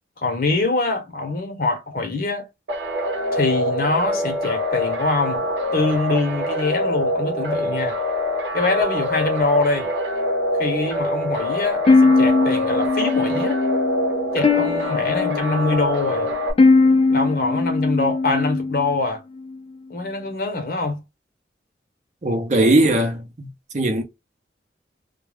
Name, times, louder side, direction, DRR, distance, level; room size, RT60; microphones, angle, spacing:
voice 1, 0.2-2.5 3.3-5.5 5.7-8.0 8.4-9.9 10.6-13.6 14.3-16.3 17.1-19.2 19.9-21.0, left 3 dB, 50° left, 0.8 m, -24 dB
sound 1, 2.7-16.5, equal, 75° right, 0.8 m, -25 dB
sound 2, 11.9-19.0, left 3 dB, 30° left, 0.3 m, -20 dB
voice 2, 22.2-23.5 23.7-24.0, right 1 dB, 40° right, 0.6 m, -19 dB
2.3 x 2.2 x 3.2 m
head